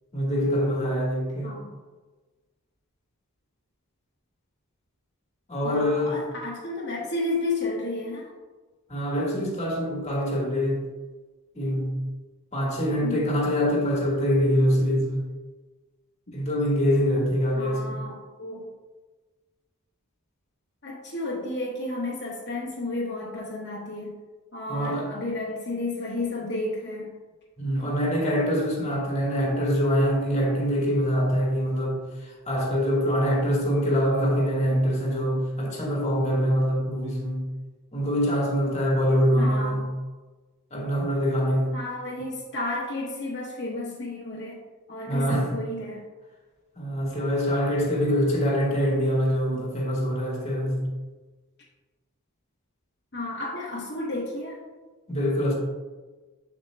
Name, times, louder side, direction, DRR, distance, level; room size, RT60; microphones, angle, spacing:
voice 1, 0.1-1.5 5.5-6.2 8.9-10.9 11.5-12.1 12.5-15.3 16.3-18.0 24.7-25.1 27.6-37.5 37.9-39.9 40.7-41.7 45.1-45.5 46.7-50.9 55.1-55.5, equal, 30° left, 1.5 m, -24 dB
voice 2, 1.4-1.8 5.6-8.3 13.0-13.4 17.5-18.7 20.8-24.2 24.5-27.1 39.3-39.9 41.7-44.6 44.9-46.0 53.1-54.6, left 2 dB, 50° left, 1.1 m, -32 dB
7.3 x 7.3 x 2.2 m
head